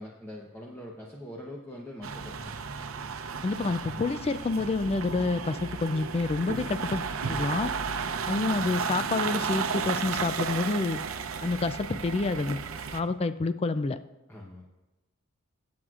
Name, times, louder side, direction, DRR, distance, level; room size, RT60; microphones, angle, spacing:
voice 1, 0.0-2.5 14.3-14.7, left 1 dB, 10° left, -2 dB, 0.9 m, -43 dB
sound 1, 2.0-13.0, right 5 dB, 80° right, 0.7 m, -33 dB
sound 2, 2.4-8.6, right 3 dB, 30° right, 1.7 m, -55 dB
voice 2, 3.4-7.7 8.3-11.0 11.4-12.6 12.9-14.0, left 3 dB, 30° left, 12 dB, 0.3 m, -28 dB
20.0 x 7.8 x 2.4 m, 1.1 s
head